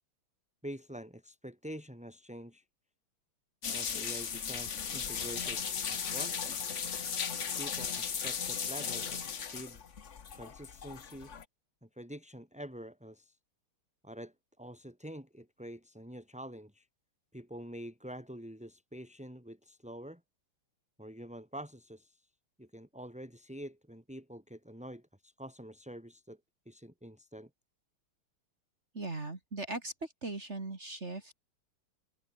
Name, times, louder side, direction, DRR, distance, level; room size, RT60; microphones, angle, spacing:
voice 1, 0.6-2.6 3.7-6.5 7.6-9.8 10.3-11.3 11.8-13.4 14.0-16.9 17.3-20.2 21.0-22.3 22.6-26.4 26.7-27.5, equal, 5° right, 7.1 m, -46 dB
sound 1, 3.6-11.4, left 7 dB, 40° left, 1.3 m, -36 dB
voice 2, 28.9-31.3, right 2 dB, 30° right, 2.9 m, -39 dB
omnidirectional pair, 2.4 m